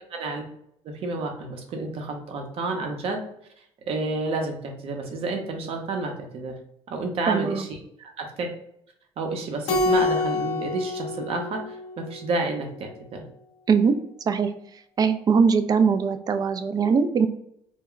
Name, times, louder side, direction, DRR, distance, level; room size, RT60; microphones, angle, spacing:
voice 1, 0.1-0.4 0.8-3.2 3.9-6.5 6.9-8.5 9.2-13.2, right 3 dB, 55° right, 3 dB, 0.7 m, -30 dB
voice 2, 7.3-7.6 13.7-13.9 14.3-14.5 15.0-17.3, right 5 dB, 35° right, 9 dB, 0.3 m, -21 dB
Keyboard (musical), 9.7-12.3, left 2 dB, 70° left, 0.6 m, -27 dB
2.2 x 2.1 x 3.7 m, 0.74 s
supercardioid pair, 90°, 11 cm